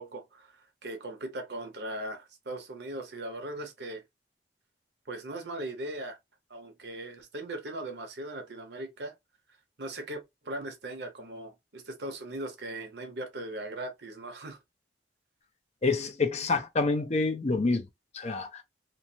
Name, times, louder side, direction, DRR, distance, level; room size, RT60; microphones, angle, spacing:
voice 1, 0.0-4.0 5.1-6.2 6.5-9.1 9.8-14.6, right 1 dB, 65° right, 0.8 m, -39 dB
voice 2, 15.8-17.9 18.1-18.6, left 3 dB, 40° left, 0.5 m, -27 dB
3.0 x 2.0 x 2.7 m
head